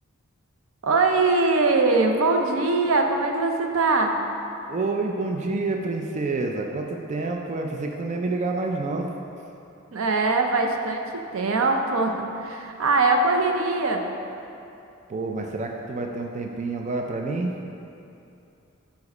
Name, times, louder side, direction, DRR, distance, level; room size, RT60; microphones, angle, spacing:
voice 1, 0.8-4.2 9.9-11.0 11.3-14.1, right 3 dB, 80° right, 4 dB, 0.6 m, -22 dB
voice 2, 4.7-9.1 15.1-17.5, right 3 dB, 35° right, 2 dB, 0.4 m, -28 dB
5.2 x 4.9 x 5.3 m, 2.8 s
head